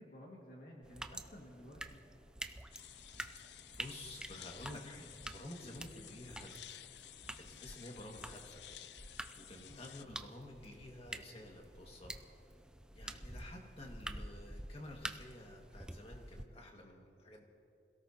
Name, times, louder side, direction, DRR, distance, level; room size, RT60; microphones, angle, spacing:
voice 1, 0.0-2.0 9.7-9.9, equal, 55° left, -2 dB, 2.0 m, -54 dB
sound 1, 0.8-16.5, right 1 dB, 5° right, 0.4 m, -49 dB
sound 2, 2.7-10.1, left 11 dB, 75° left, 0.5 m, -54 dB
voice 2, 3.7-6.8 7.5-8.6 9.3-12.2 12.9-17.5, left 1 dB, 35° left, 1 dB, 1.9 m, -51 dB
26.5 x 17.0 x 2.9 m, 2.7 s
head